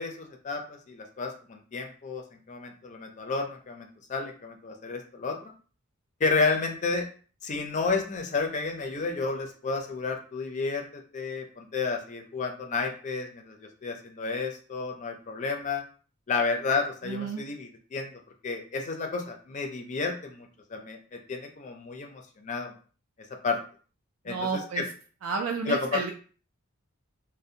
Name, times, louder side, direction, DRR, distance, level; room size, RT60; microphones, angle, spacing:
voice 1, 0.0-5.5 6.2-7.1 7.4-15.8 16.3-22.7 23.4-23.6 24.2-24.8 25.7-26.0, left 4 dB, 35° left, 3 dB, 0.4 m, -31 dB
voice 2, 17.1-17.4 24.3-24.8 25.2-26.1, right 5 dB, 70° right, 3 dB, 0.3 m, -31 dB
2.5 x 2.0 x 2.7 m, 0.40 s
head